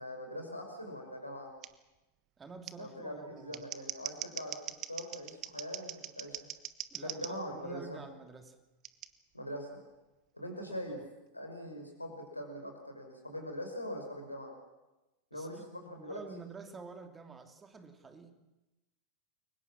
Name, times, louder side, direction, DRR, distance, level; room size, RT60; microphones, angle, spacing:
voice 1, 0.0-1.5 2.8-4.5 4.9-6.5 7.0-8.0 9.3-9.8 10.3-11.0 11.3-14.6 15.3-16.2, equal, 85° left, 4 dB, 5.3 m, -42 dB
Scissors, 1.6-1.7 2.6-2.7 3.4-7.3 8.8-9.1, right 13 dB, 35° right, 1.2 m, -41 dB
voice 2, 2.4-3.6 6.9-8.6 10.7-11.0 15.3-15.7 16.0-18.3, right 4 dB, 15° right, 6 dB, 2.9 m, -49 dB
29.5 x 23.0 x 6.2 m, 1.0 s
figure-of-eight pair, 90°, 0 cm